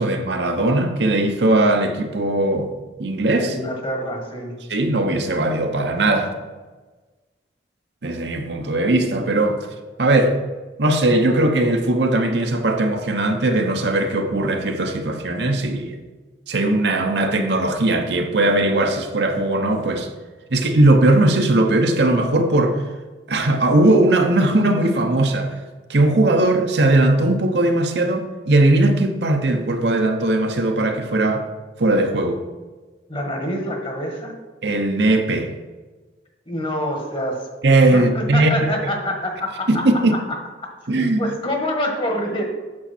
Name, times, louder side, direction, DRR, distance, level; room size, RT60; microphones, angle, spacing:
voice 1, 0.0-2.7 3.0-3.5 4.7-6.4 8.0-9.7 10.0-10.4 10.8-16.0 16.5-20.1 20.5-22.8 23.3-25.5 25.9-31.4 31.8-32.4 34.6-35.5 37.6-38.7 39.7-40.1 40.9-41.3, right 2 dB, 65° right, 0.9 m, -19 dB
voice 2, 3.4-4.6 33.1-34.3 36.5-37.5 37.9-42.4, left 1 dB, 30° left, 1.5 m, -27 dB
8.8 x 6.5 x 4.2 m
head